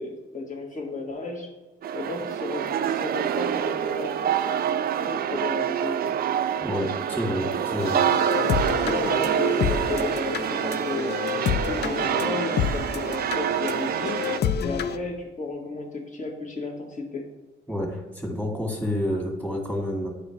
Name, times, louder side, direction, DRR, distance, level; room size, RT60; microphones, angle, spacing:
voice 1, 0.0-1.5 1.9-4.3 5.0-6.2 7.4-11.2 11.7-14.2 14.6-17.3, left 3 dB, 40° left, 1 dB, 1.6 m, -33 dB
sound 1, 1.8-14.4, right 9 dB, 50° right, 0.4 m, -26 dB
voice 2, 6.6-7.5 7.7-8.0 17.7-20.1, equal, 5° left, -1 dB, 2.0 m, -28 dB
sound 2, 7.8-15.0, left 8 dB, 55° left, 0.5 m, -29 dB
9.9 x 4.8 x 3.2 m, 1.1 s
cardioid pair, 90°, 20 cm